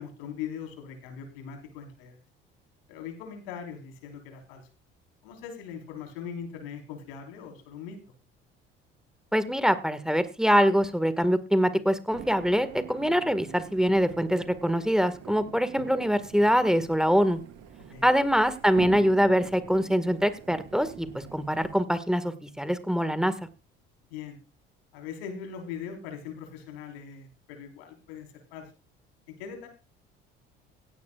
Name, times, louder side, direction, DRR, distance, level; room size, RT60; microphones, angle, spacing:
voice 1, 0.0-2.2 2.9-4.7 5.2-8.0 17.9-18.1 24.1-24.4 24.9-28.7 29.3-29.7, left 7 dB, 75° left, 4 dB, 4.5 m, -40 dB
voice 2, 9.3-17.4 18.0-23.3, equal, ahead, 12 dB, 1.9 m, -24 dB
sound 1, 12.1-21.7, right 9 dB, 65° right, 4.1 m, -45 dB
17.0 x 16.5 x 2.5 m, 0.31 s
hypercardioid pair, 60°, 29 cm